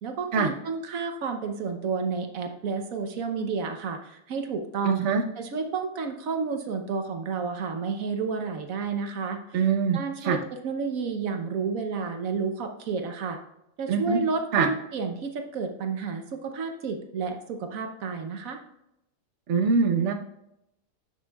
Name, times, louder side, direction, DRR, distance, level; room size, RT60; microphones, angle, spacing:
voice 1, 0.0-5.0 5.4-9.7 9.9-13.4 13.8-18.6, right 5 dB, 80° right, 5 dB, 1.3 m, -31 dB
voice 2, 4.8-5.2 9.5-10.4 13.9-14.2 14.5-14.7 19.5-20.1, right 5 dB, 60° right, 5 dB, 1.1 m, -23 dB
10.0 x 6.5 x 2.3 m, 0.82 s
omnidirectional pair, 1.4 m